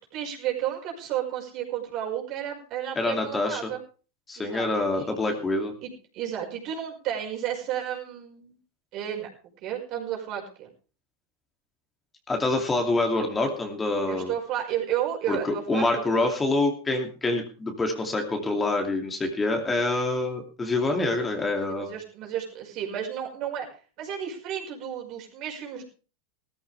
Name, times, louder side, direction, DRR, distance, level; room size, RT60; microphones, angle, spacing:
voice 1, 0.0-3.8 4.4-4.7 4.9-5.4 5.8-8.6 8.9-9.3 9.6-10.7 14.1-16.3 21.7-23.7 24.0-25.8, right 10 dB, 50° right, 1 dB, 5.4 m, -32 dB
voice 2, 3.0-3.6 4.3-5.7 12.3-14.3 15.3-21.9, left 2 dB, 15° left, 3 dB, 2.8 m, -26 dB
17.5 x 14.0 x 3.5 m, 0.36 s
hypercardioid pair, 100°, 0 cm